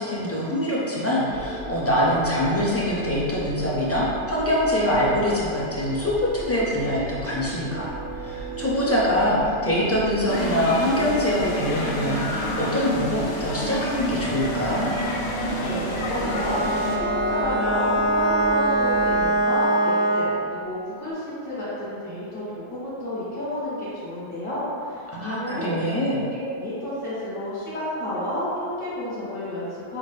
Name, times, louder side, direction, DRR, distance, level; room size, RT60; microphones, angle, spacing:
voice 1, 0.0-14.9 25.1-26.2, equal, 20° left, -8 dB, 0.4 m, -24 dB
sound 1, 1.3-19.3, right 2 dB, 60° right, 0.7 m, -35 dB
sound 2, 10.3-17.0, left 1 dB, 65° left, 0.7 m, -29 dB
voice 2, 15.6-25.7 26.0-30.0, left 1 dB, 45° left, -12 dB, 1.6 m, -30 dB
Bowed string instrument, 16.2-20.5, right 1 dB, 80° left, 1.1 m, -23 dB
5.9 x 2.1 x 3.2 m, 2.5 s
omnidirectional pair, 1.2 m